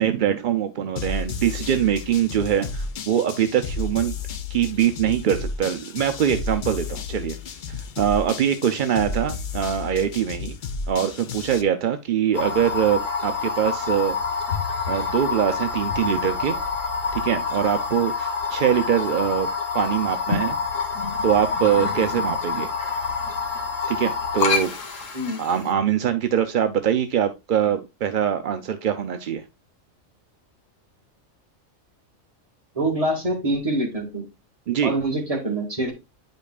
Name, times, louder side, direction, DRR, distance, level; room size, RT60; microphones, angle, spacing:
voice 1, 0.0-4.1 4.5-7.6 8.0-10.6 10.9-14.2 14.9-16.6 17.1-19.5 19.7-20.6 21.2-22.7 23.9-24.8 25.4-29.4 34.7-34.9, right 9 dB, 55° right, 8 dB, 0.5 m, -23 dB
sound 1, 1.0-11.6, left 4 dB, 55° left, 0.6 m, -32 dB
sound 2, 12.3-25.7, left 5 dB, 70° left, 1.6 m, -27 dB
voice 2, 32.8-34.2 34.8-35.9, right 1 dB, 25° right, 0 dB, 2.0 m, -25 dB
9.5 x 5.2 x 2.3 m, 0.24 s
omnidirectional pair, 1.4 m